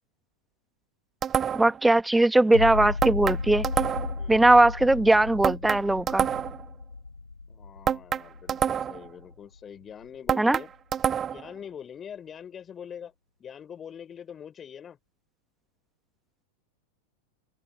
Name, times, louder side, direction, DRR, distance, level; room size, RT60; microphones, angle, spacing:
sound 1, 1.2-1.8 3.0-4.2 5.4-6.7 7.9-9.1 10.3-11.5, right 8 dB, 25° right, 1.2 m, -27 dB
voice 1, 1.5-3.7 4.3-6.3 10.4-10.6, right 2 dB, 5° right, 2.6 m, -20 dB
sound 2, 2.5-9.6 10.0-10.1, left 3 dB, 80° left, 1.7 m, -34 dB
voice 2, 4.2-4.5 7.5-10.7 11.3-13.1 13.4-15.0, left 8 dB, 25° left, 7.0 m, -43 dB
open air
figure-of-eight pair, 90°, 0 cm